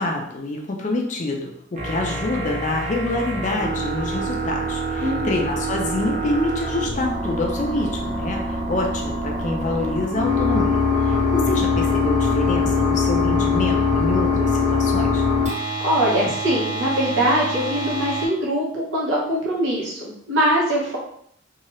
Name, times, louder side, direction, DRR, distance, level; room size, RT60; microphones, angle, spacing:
voice 1, 0.0-15.3, left 2 dB, 40° left, 2 dB, 0.4 m, -26 dB
sound 1, 1.8-18.3, left 2 dB, 35° right, 0.6 m, -23 dB
voice 2, 5.0-5.3 15.8-21.0, equal, 75° right, -4 dB, 1.0 m, -22 dB
2.7 x 2.3 x 3.0 m, 0.67 s
head